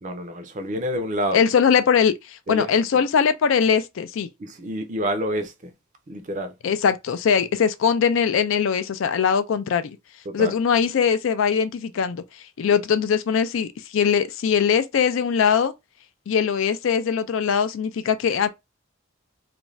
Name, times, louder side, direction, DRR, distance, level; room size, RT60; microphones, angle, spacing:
voice 1, 0.0-1.4 2.5-2.7 4.4-5.7 6.1-6.5 10.3-10.5, equal, 35° right, 0.5 m, -28 dB
voice 2, 1.3-4.3 6.6-10.0 10.3-12.2 12.6-15.7 16.3-18.5, left 7 dB, 65° left, 0.4 m, -21 dB
2.5 x 2.2 x 3.1 m
head